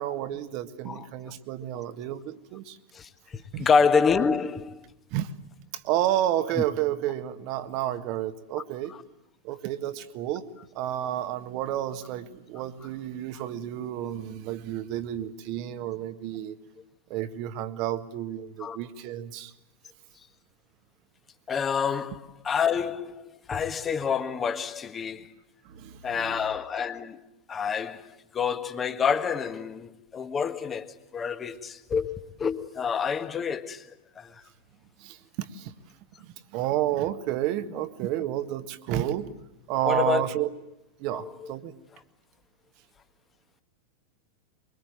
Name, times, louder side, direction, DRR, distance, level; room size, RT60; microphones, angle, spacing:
voice 1, 0.0-2.8 3.5-3.7 5.1-5.3 5.7-8.9 9.4-10.4 10.8-16.6 17.1-19.5 25.7-26.4 35.0-35.7 36.2-39.3 39.7-40.5 41.0-41.7, right 12 dB, 45° right, 1.6 m, -31 dB
voice 2, 2.9-4.8 8.9-9.0 18.6-18.8 21.5-25.3 26.0-27.2 27.5-30.9 31.1-33.9 34.2-34.3 39.8-40.2 41.1-41.5, left 6 dB, 20° left, 1.7 m, -27 dB
24.0 x 24.0 x 9.5 m
figure-of-eight pair, 90°, 0 cm